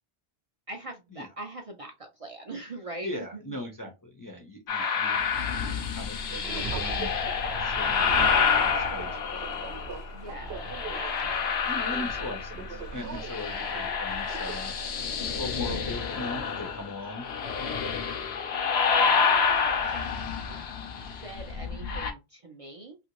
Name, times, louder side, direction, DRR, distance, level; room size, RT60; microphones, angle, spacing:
voice 1, 0.7-3.5 4.7-5.1 10.1-11.7 18.1-20.0 20.5-23.0, right 2 dB, 45° right, 2 dB, 0.5 m, -43 dB
voice 2, 3.0-5.2 5.5-9.7 10.4-10.7 11.7-15.0 15.3-17.3 18.9-19.2, left 1 dB, 25° left, 2 dB, 0.5 m, -40 dB
sound 1, 4.7-10.0 10.5-12.8 13.0-22.1, left 6 dB, 85° left, 0.9 m, -28 dB
Subway metro underground, 5.9-15.9, right 3 dB, 75° right, 0.8 m, -39 dB
2.9 x 2.5 x 2.9 m, 0.25 s
omnidirectional pair, 1.0 m